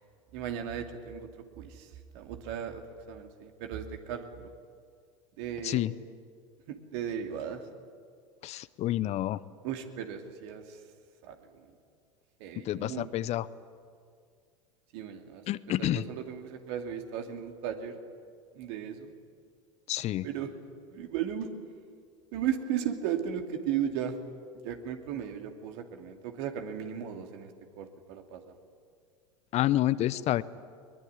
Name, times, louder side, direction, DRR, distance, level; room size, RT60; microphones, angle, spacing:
voice 1, 0.3-1.3 1.6-2.8 3.1-4.5 5.4-5.8 6.7-7.6 9.6-10.8 11.2-11.7 12.4-13.3 14.9-15.4 15.8-18.0 18.5-19.1 20.2-20.5 20.9-21.5 22.3-24.2 24.6-28.5, right 9 dB, 60° right, 5 dB, 2.7 m, -36 dB
voice 2, 8.4-9.4 12.6-13.5 15.5-16.0 19.9-20.3 29.5-30.4, left 14 dB, 40° left, 18 dB, 0.8 m, -28 dB
22.5 x 21.0 x 9.8 m, 2.1 s
hypercardioid pair, 85°, 17 cm